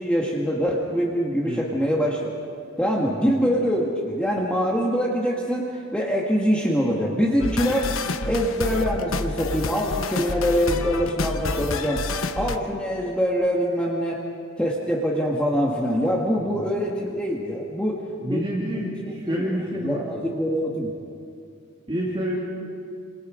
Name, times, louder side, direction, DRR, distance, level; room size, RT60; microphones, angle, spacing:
voice 1, 0.0-2.2 2.8-7.9 8.2-12.0 12.4-14.2 14.6-19.4 19.8-20.9, equal, 5° left, -3 dB, 1.8 m, -24 dB
sound 1, 7.4-12.6, left 3 dB, 75° left, 1.0 m, -29 dB
voice 2, 18.2-20.0 21.9-22.4, equal, 25° right, -4 dB, 2.8 m, -28 dB
28.5 x 27.0 x 5.2 m, 2.3 s
head